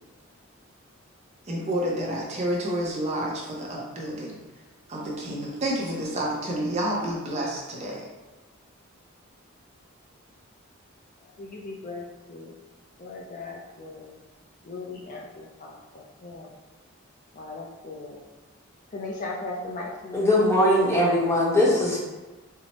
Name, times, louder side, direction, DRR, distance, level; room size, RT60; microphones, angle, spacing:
voice 1, 1.5-4.4 4.9-8.1, right 1 dB, 30° right, -3 dB, 0.6 m, -29 dB
voice 2, 11.4-12.6 13.0-14.2 14.6-16.5 17.3-18.2 18.9-20.4, left 3 dB, 40° left, -2 dB, 0.4 m, -38 dB
voice 3, 20.1-22.0, left 1 dB, 15° left, -6 dB, 0.8 m, -20 dB
4.4 x 2.0 x 2.9 m, 1.2 s
head